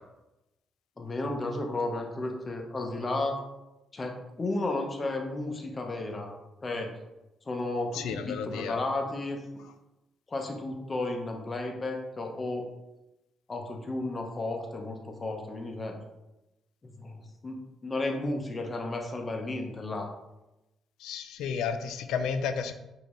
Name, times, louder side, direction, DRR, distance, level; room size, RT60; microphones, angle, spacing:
voice 1, 1.0-3.4 3.9-6.3 6.6-6.9 7.5-9.4 10.3-12.6 13.5-16.0 17.0-20.1, left 2 dB, 30° left, 2 dB, 0.7 m, -33 dB
voice 2, 8.0-8.8 21.0-22.7, left 6 dB, 90° left, 8 dB, 0.3 m, -32 dB
5.1 x 2.7 x 3.1 m, 0.96 s
cardioid pair, 90°, 0 cm